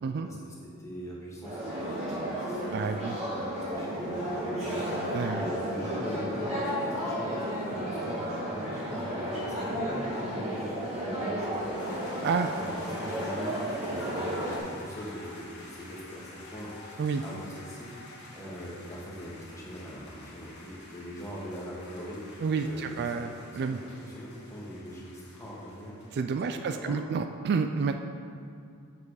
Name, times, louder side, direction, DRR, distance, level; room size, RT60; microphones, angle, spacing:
voice 1, 0.2-2.7 3.2-8.2 8.5-12.2 12.5-22.2 22.6-26.0 26.4-27.1, equal, 15° left, -5 dB, 1.6 m, -42 dB
sound 1, 1.4-14.6, equal, 30° right, 2.0 m, -33 dB
voice 2, 2.7-3.2 5.1-5.4 12.2-12.5 17.0-17.2 22.4-23.8 26.1-28.0, right 5 dB, 50° right, 7 dB, 0.3 m, -29 dB
sound 2, 11.5-26.1, left 2 dB, 50° left, 1.6 m, -48 dB
7.3 x 6.6 x 4.8 m, 2.4 s
head